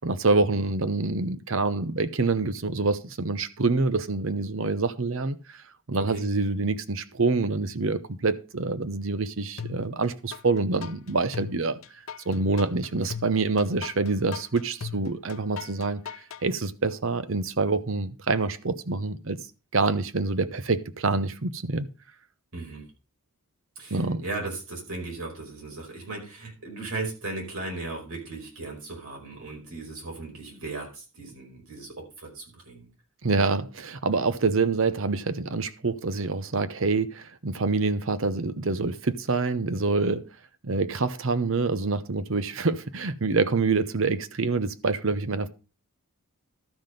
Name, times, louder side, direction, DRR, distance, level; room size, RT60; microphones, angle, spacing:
voice 1, 0.0-5.6 5.9-11.8 12.3-16.0 16.4-19.4 19.7-21.9 23.9-24.2 33.2-40.3 40.6-45.5, right 3 dB, 65° right, 0.8 m, -26 dB
sound 1, 9.6-10.4 10.8-16.4, left 7 dB, 70° left, 0.5 m, -38 dB
voice 2, 22.5-22.9 23.7-32.9, right 3 dB, 85° right, 4.9 m, -37 dB
12.5 x 5.9 x 5.1 m
head